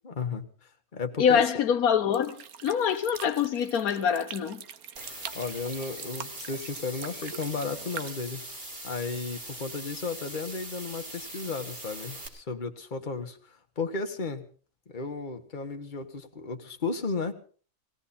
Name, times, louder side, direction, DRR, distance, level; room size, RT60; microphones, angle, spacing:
voice 1, 0.0-0.4 0.9-1.4 5.3-8.4 8.8-14.4 14.9-17.3, left 4 dB, 35° left, 1.5 m, -34 dB
voice 2, 1.2-4.6, left 7 dB, 80° left, 1.4 m, -25 dB
sound 1, 2.1-8.1, right 8 dB, 85° right, 1.5 m, -44 dB
sound 2, 5.0-12.3, right 1 dB, 40° right, 3.8 m, -41 dB
20.0 x 16.5 x 4.3 m
omnidirectional pair, 1.5 m